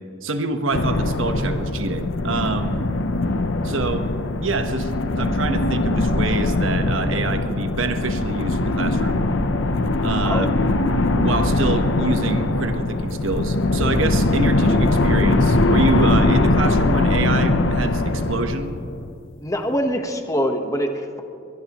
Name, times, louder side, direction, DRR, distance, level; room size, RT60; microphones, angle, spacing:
voice 1, 0.2-2.8 3.6-4.1 4.4-4.9 5.2-9.2 10.0-10.5 11.1-18.7, right 3 dB, 85° right, 7 dB, 1.2 m, -26 dB
sound 1, 0.7-19.2, left 2 dB, 70° left, 0.8 m, -21 dB
voice 2, 19.4-21.2, equal, 15° left, 5 dB, 1.1 m, -24 dB
21.5 x 20.0 x 3.0 m, 2.5 s
head